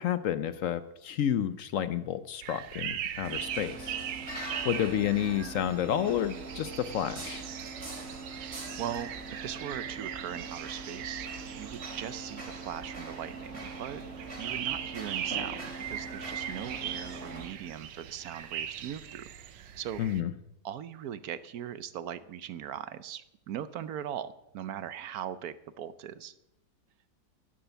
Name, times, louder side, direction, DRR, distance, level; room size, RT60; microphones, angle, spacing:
voice 1, 0.0-4.0 4.6-7.5 20.0-20.3, left 10 dB, 70° left, 13 dB, 0.7 m, -30 dB
sound 1, 2.4-20.2, right 9 dB, 85° right, 1.5 m, -40 dB
sound 2, 3.2-17.5, right 2 dB, 35° right, 2.9 m, -42 dB
voice 2, 8.8-11.3 11.6-14.0 14.4-19.3 19.8-20.0 20.6-26.3, right 10 dB, 65° right, 14 dB, 1.0 m, -39 dB
11.5 x 10.5 x 7.0 m, 0.86 s
omnidirectional pair, 1.9 m